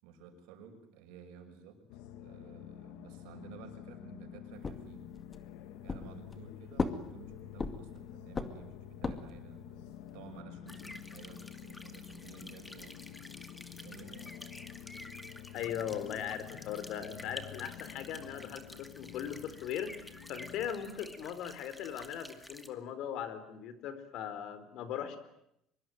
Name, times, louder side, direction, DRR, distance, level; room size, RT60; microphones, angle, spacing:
voice 1, 0.0-1.8 2.2-5.1 5.8-13.2 13.8-14.4, right 6 dB, 85° right, 6 dB, 5.9 m, -53 dB
sound 1, 1.9-20.7, left 11 dB, 85° left, 2.0 m, -49 dB
sound 2, 4.6-5.5 5.9-6.5 6.8-8.0 8.3-9.4, left 4 dB, 25° left, 2.2 m, -36 dB
sound 3, 10.7-22.7, left 1 dB, 5° left, 2.2 m, -51 dB
voice 2, 15.5-25.2, left 9 dB, 65° left, 12 dB, 4.1 m, -39 dB
24.5 x 23.0 x 9.4 m, 0.79 s
cardioid pair, 125°, 0 cm